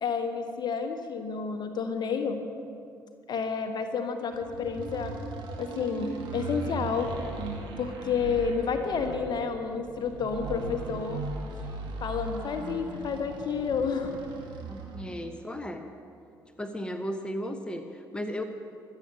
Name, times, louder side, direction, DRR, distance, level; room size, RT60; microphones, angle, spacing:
voice 1, 0.0-2.4 3.3-5.1 5.6-7.1 7.8-11.2 12.0-14.1, left 5 dB, 45° left, 6 dB, 1.5 m, -30 dB
sound 1, 4.3-15.1, right 3 dB, 50° right, 2.4 m, -38 dB
voice 2, 14.7-15.9 16.6-18.4, equal, 10° left, 7 dB, 1.1 m, -35 dB
24.5 x 8.3 x 5.6 m, 2.4 s
figure-of-eight pair, 45°, 10 cm